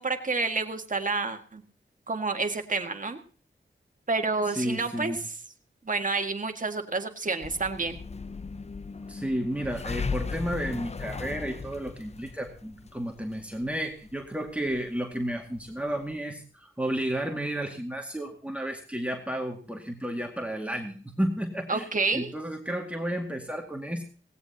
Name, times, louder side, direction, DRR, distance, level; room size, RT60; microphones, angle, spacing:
voice 1, 0.0-1.6 2.1-3.2 4.1-5.1 5.9-8.0 21.7-22.3, right 3 dB, 45° right, 5 dB, 1.8 m, -29 dB
voice 2, 4.6-5.2 9.1-24.0, right 1 dB, 5° right, 1 dB, 2.1 m, -32 dB
sound 1, 7.4-16.2, left 4 dB, 35° left, 0.6 m, -37 dB
17.5 x 17.0 x 2.9 m, 0.40 s
wide cardioid pair, 70°, 19 cm